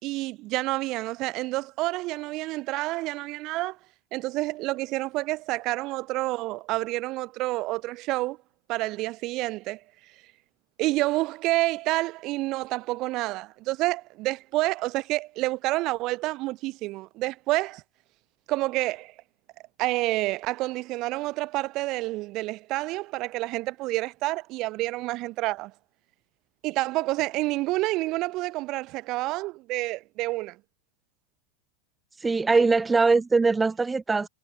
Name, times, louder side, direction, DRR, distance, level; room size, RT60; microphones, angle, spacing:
voice 1, 0.0-3.8 4.1-8.4 8.7-9.8 10.8-17.8 18.5-19.1 19.8-25.7 26.6-30.6, right 19 dB, 40° right, 2.5 m, -28 dB
voice 2, 32.2-34.3, right 4 dB, 10° right, 1.8 m, -22 dB
figure-of-eight pair, 90°, 0 cm